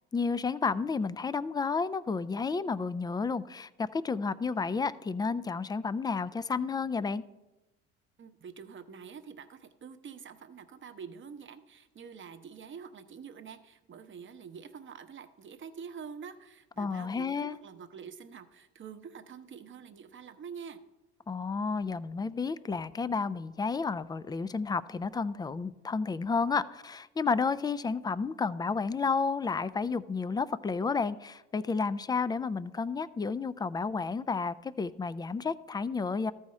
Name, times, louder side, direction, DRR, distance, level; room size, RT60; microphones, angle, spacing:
voice 1, 0.1-7.2 16.8-17.6 21.3-36.3, left 4 dB, 15° left, 17 dB, 0.3 m, -31 dB
voice 2, 8.2-20.8, right 6 dB, 35° right, 9 dB, 0.8 m, -46 dB
14.0 x 4.9 x 4.2 m, 1.0 s
hypercardioid pair, 60°, 33 cm